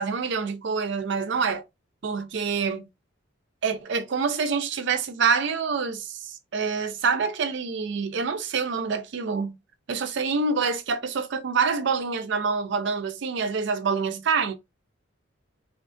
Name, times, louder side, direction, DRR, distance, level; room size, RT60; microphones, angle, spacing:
voice 1, 0.0-1.6 2.0-2.9 3.6-9.6 9.9-14.6, right 5 dB, 65° right, 0.5 m, -26 dB
2.8 x 2.4 x 2.5 m
head